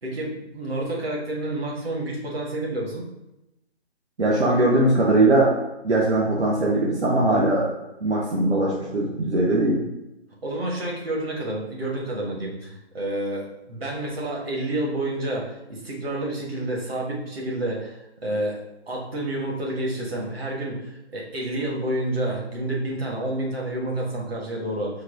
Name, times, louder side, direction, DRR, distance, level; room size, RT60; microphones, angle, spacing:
voice 1, 0.0-3.1 10.4-18.6 18.9-25.0, right 1 dB, 60° right, -3 dB, 1.5 m, -29 dB
voice 2, 4.2-5.5 5.8-7.7 8.0-9.8, right 2 dB, 80° right, -4 dB, 1.1 m, -20 dB
4.5 x 2.2 x 4.6 m, 0.91 s
hypercardioid pair, 165°, 34 cm